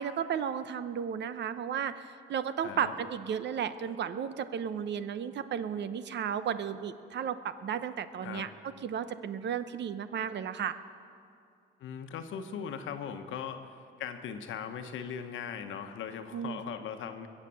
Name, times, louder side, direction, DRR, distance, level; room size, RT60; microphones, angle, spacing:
voice 1, 0.0-8.5 8.8-10.8 16.3-16.8, right 8 dB, 60° right, 12 dB, 0.8 m, -34 dB
voice 2, 2.6-2.9 8.2-8.5 11.8-13.7 14.0-17.3, left 7 dB, 80° left, 7 dB, 1.1 m, -39 dB
21.5 x 7.5 x 7.5 m, 2.4 s
cardioid pair, 90°, 20 cm